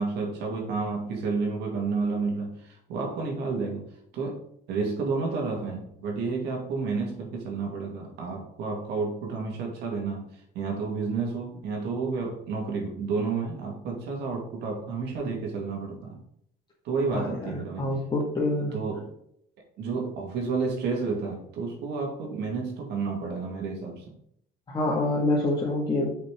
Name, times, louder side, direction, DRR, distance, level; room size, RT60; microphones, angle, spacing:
voice 1, 0.0-3.8 4.1-10.2 10.5-16.2 16.8-17.9 18.7-19.1 19.8-24.0, right 4 dB, 80° right, 0 dB, 2.3 m, -30 dB
voice 2, 17.1-18.7 24.7-26.1, left 2 dB, 25° left, -4 dB, 1.8 m, -26 dB
5.7 x 5.6 x 4.9 m, 0.70 s
cardioid pair, 110°, 17 cm